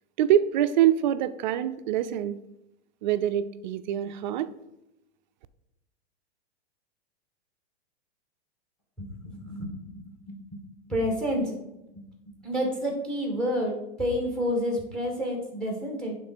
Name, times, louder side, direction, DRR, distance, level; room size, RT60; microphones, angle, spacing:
voice 1, 0.2-2.4 3.0-4.5, right 11 dB, 45° right, 12 dB, 0.4 m, -25 dB
voice 2, 9.0-11.5 11.9-12.0 12.4-16.2, equal, ahead, 1 dB, 1.7 m, -30 dB
11.0 x 3.8 x 4.3 m, 0.89 s
hypercardioid pair, 145°, 34 cm